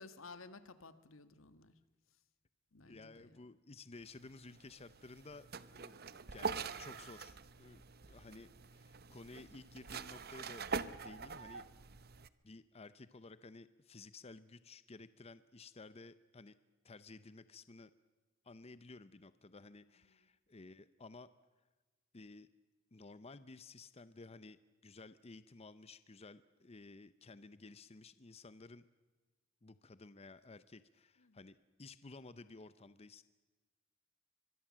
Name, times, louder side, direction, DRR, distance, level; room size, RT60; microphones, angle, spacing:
voice 1, 0.0-1.8 2.7-3.4 20.2-20.3 31.2-31.4, left 3 dB, 85° left, 11 dB, 1.6 m, -55 dB
voice 2, 2.9-5.5 5.7-7.8 8.1-10.7 11.0-11.7 12.4-16.5 16.8-17.9 18.4-21.3 22.1-22.5 22.9-28.8 29.6-33.2, left 3 dB, 30° left, 14 dB, 0.7 m, -54 dB
sound 1, 4.0-12.3, right 5 dB, 50° right, 0.9 m, -45 dB
25.0 x 22.0 x 7.5 m, 1.2 s
head